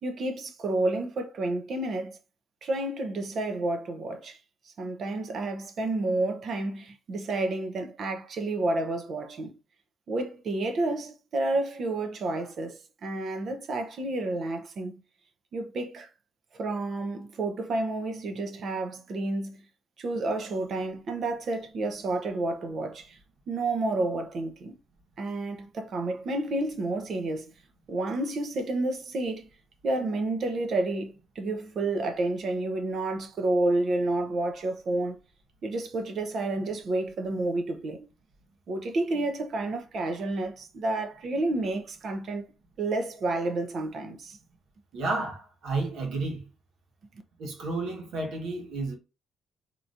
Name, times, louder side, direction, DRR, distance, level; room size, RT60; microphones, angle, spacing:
voice 1, 0.0-2.2 2.6-4.4 4.6-9.6 10.1-14.9 15.5-16.1 16.5-19.6 20.0-23.2 23.5-24.8 25.2-27.5 27.9-29.5 29.8-35.2 35.6-38.1 38.7-42.5 42.8-44.4, right 2 dB, 60° right, 0.8 m, -30 dB
voice 2, 44.9-46.5 47.4-48.9, right 3 dB, 80° right, 1.4 m, -31 dB
4.0 x 2.9 x 2.5 m
cardioid pair, 90°, 0 cm